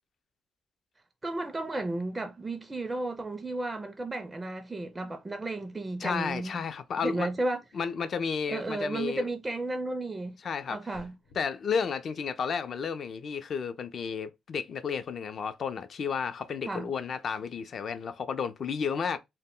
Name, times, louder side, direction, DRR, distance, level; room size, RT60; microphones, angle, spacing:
voice 1, 1.2-6.6 7.0-7.6 8.5-10.4 10.7-11.1 16.6-16.9, right 2 dB, 20° right, 0.4 m, -33 dB
voice 2, 6.0-7.3 7.7-9.3 10.4-10.8 11.3-19.2, left 6 dB, 55° left, 0.4 m, -32 dB
sound 1, 10.9-11.4, left 3 dB, 85° left, 0.8 m, -53 dB
2.1 x 2.1 x 3.6 m
cardioid pair, 90°, 0 cm